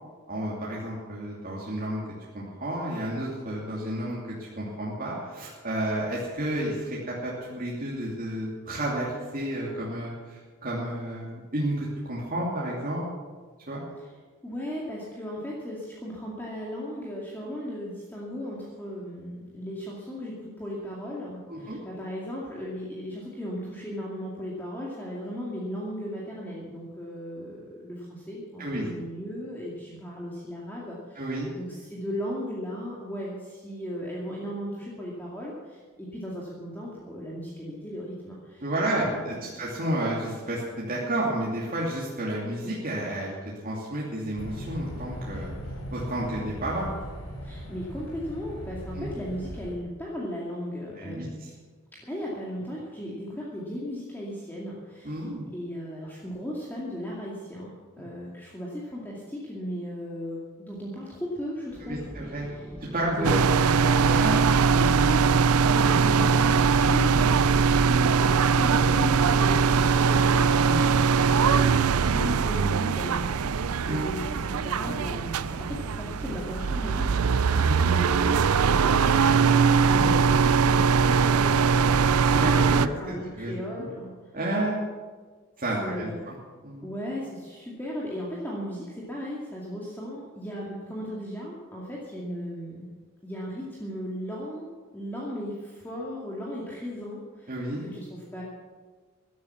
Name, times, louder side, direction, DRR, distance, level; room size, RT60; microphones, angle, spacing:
voice 1, 0.3-2.0 2.3-13.0 13.7-13.8 21.5-21.8 28.6-28.9 31.2-31.5 38.6-43.3 43.6-45.5 45.9-46.9 48.9-49.0 51.0-51.2 55.0-55.4 61.8-62.5 62.9-65.4 70.6-70.9 73.9-74.1 77.5-77.8 79.9-80.1 82.3-83.9 84.3-84.8 85.6-86.3 86.6-86.9 97.5-97.8, right 1 dB, 40° right, -6 dB, 2.9 m, -31 dB
voice 2, 14.4-38.7 38.9-39.5 47.4-51.4 52.0-55.3 55.5-57.7 58.0-62.7 63.2-63.6 65.6-70.6 70.8-79.6 79.8-84.1 85.8-86.2 86.8-92.9 93.2-98.4, equal, 10° left, -5 dB, 2.3 m, -36 dB
sound 1, 44.4-49.8, equal, 75° left, 4.3 m, -38 dB
sound 2, 61.7-77.4, equal, 5° right, 1.8 m, -43 dB
sound 3, 63.2-82.9, right 5 dB, 85° right, 0.5 m, -21 dB
14.0 x 12.0 x 7.1 m, 1.5 s
head